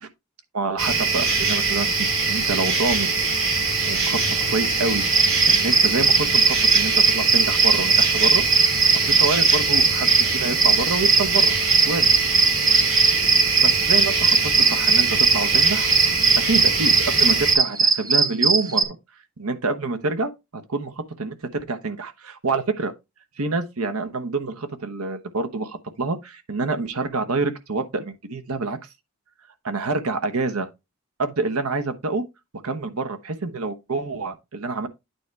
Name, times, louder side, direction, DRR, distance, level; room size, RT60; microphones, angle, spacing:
voice 1, 0.5-3.1 3.8-4.2 4.5-5.1 5.5-8.4 9.0-10.1 10.3-11.5 11.8-12.1 13.6-15.9 16.4-19.0 19.4-22.9 23.4-28.8 29.6-30.7 31.2-32.3 32.6-34.9, right 3 dB, 85° right, 1.0 m, -27 dB
sound 1, 0.8-17.5, right 4 dB, 65° right, 2.2 m, -23 dB
sound 2, 5.1-18.8, right 4 dB, 15° right, 0.6 m, -19 dB
9.2 x 3.3 x 4.7 m
head